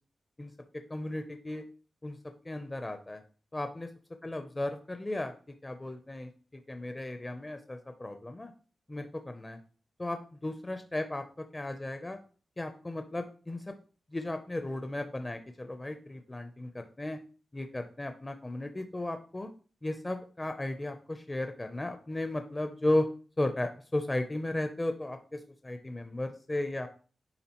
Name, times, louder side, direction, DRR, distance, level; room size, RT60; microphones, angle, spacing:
voice 1, 0.4-1.6 2.0-2.2 2.4-3.2 3.5-3.9 4.2-5.3 5.6-8.5 8.9-9.6 10.0-12.2 12.6-13.7 14.1-17.2 17.5-19.5 19.8-23.1 23.4-26.9, left 1 dB, 20° left, 7 dB, 0.5 m, -35 dB
9.8 x 3.6 x 2.9 m, 0.40 s
cardioid pair, 80°, 0 cm